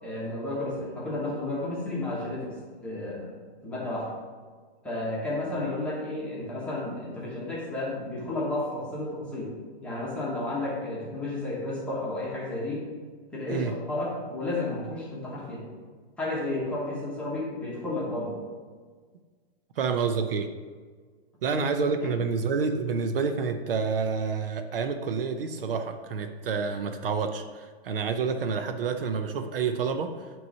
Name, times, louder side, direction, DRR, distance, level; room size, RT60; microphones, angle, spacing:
voice 1, 0.0-2.5 2.8-3.3 3.6-4.1 4.8-9.5 9.8-12.9 13.3-15.6 16.2-18.3 21.4-21.6 22.0-22.1, left 2 dB, 5° left, -7 dB, 0.9 m, -32 dB
voice 2, 19.8-20.5 21.4-30.3, right 5 dB, 60° right, 7 dB, 0.6 m, -28 dB
9.1 x 3.1 x 5.4 m, 1.5 s
hypercardioid pair, 170°, 32 cm